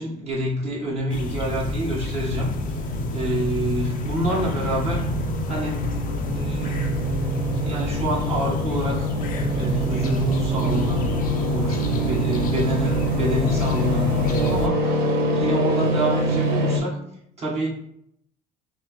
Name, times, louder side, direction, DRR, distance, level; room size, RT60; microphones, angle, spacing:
voice 1, 0.0-2.8 3.1-5.0 5.4-5.9 6.3-7.2 7.6-9.1 9.5-11.2 11.5-17.0 17.4-17.7, right 1 dB, 40° right, -5 dB, 1.6 m, -27 dB
sound 1, 1.1-14.7, left 2 dB, 55° left, 0.6 m, -29 dB
sound 2, 1.9-16.8, equal, 85° right, 0.9 m, -26 dB
5.9 x 2.1 x 3.2 m, 0.74 s
cardioid pair, 110°, 17 cm